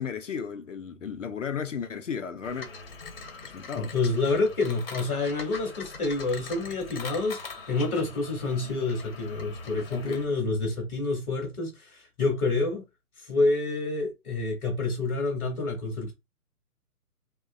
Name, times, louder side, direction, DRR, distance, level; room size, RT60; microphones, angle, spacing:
voice 1, 0.0-2.7 3.4-3.9 7.9-8.1 9.9-10.2, left 7 dB, 55° left, 0.5 m, -34 dB
sound 1, 2.4-10.3, left 4 dB, 40° left, 0.9 m, -42 dB
voice 2, 3.7-12.8 13.2-16.1, left 3 dB, ahead, 0.5 m, -28 dB
2.9 x 2.2 x 2.4 m
hypercardioid pair, 150°, 46 cm